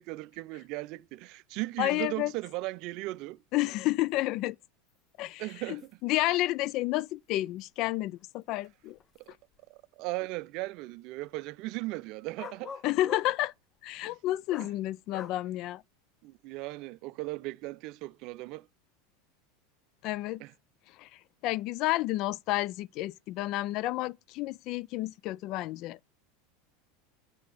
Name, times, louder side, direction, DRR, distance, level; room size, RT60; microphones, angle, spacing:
voice 1, 0.0-3.4 5.4-5.9 9.3-9.4 9.7-12.7 14.6-14.7 16.2-18.7 20.4-20.5, right 20 dB, 60° right, 0.4 m, -37 dB
voice 2, 1.8-2.3 3.5-4.6 5.2-9.0 12.8-13.5 13.8-15.8 20.0-20.4 21.0-21.1 21.4-26.0, left 17 dB, 55° left, 0.3 m, -30 dB
sound 1, 4.9-5.0 5.5-5.6 5.8-5.9 6.9-7.0 7.8-7.9 8.6-9.6 12.4-13.3 14.5-14.8 15.1-15.4, left 7 dB, 35° left, 0.7 m, -44 dB
7.4 x 3.4 x 6.2 m
supercardioid pair, 110°, 0 cm